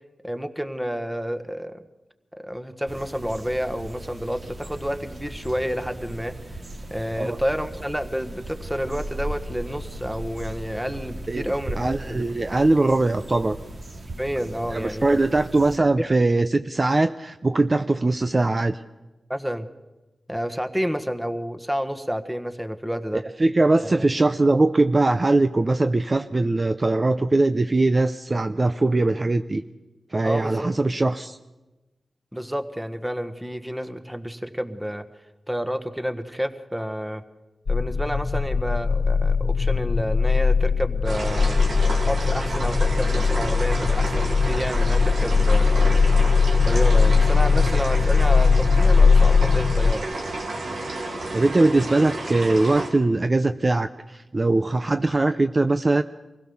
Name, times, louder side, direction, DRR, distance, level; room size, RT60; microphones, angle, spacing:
voice 1, 0.2-1.8 2.4-6.3 6.9-12.2 14.2-15.2 16.0-16.1 19.3-19.7 20.3-23.2 23.8-24.0 30.2-30.7 32.3-35.0 35.5-37.2 37.7-41.5 42.0-45.9 46.6-50.1, equal, 5° right, 9 dB, 1.5 m, -29 dB
sound 1, 2.9-15.8, right 1 dB, 65° right, 2.6 m, -37 dB
voice 2, 11.8-13.6 14.7-18.8 23.4-29.6 30.1-31.4 51.3-56.0, right 2 dB, 35° right, 9 dB, 0.6 m, -21 dB
sound 2, 37.7-49.9, left 4 dB, 60° left, 0.8 m, -19 dB
sound 3, 41.0-52.9, right 2 dB, 85° right, 3.0 m, -31 dB
24.5 x 16.5 x 7.1 m, 1.1 s
cardioid pair, 65°, 0 cm